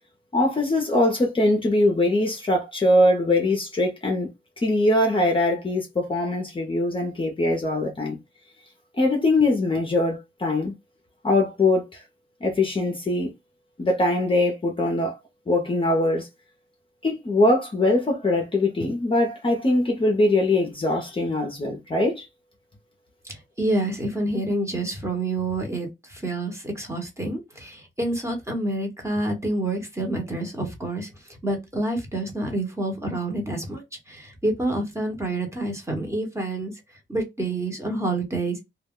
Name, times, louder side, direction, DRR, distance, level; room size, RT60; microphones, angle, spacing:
voice 1, 0.3-4.3 4.6-8.2 9.0-10.7 11.2-12.0 12.4-13.3 13.8-15.1 15.5-16.3 17.0-22.3, left 2 dB, 25° left, 0.6 m, -22 dB
voice 2, 23.3-36.7 37.1-38.6, right 2 dB, 15° right, 1.0 m, -28 dB
2.3 x 2.1 x 3.5 m
wide cardioid pair, 120°, 20 cm